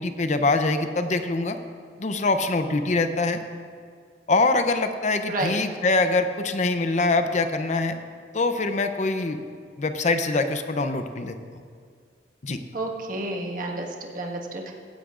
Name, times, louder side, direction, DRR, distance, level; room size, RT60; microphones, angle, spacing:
voice 1, 0.0-1.6 2.0-3.4 4.3-8.0 8.3-9.4 9.8-11.4 12.4-12.6, left 3 dB, 40° left, 8 dB, 0.6 m, -24 dB
voice 2, 12.7-14.7, right 2 dB, 50° right, 0 dB, 1.6 m, -30 dB
16.0 x 15.5 x 2.5 m, 2.1 s
head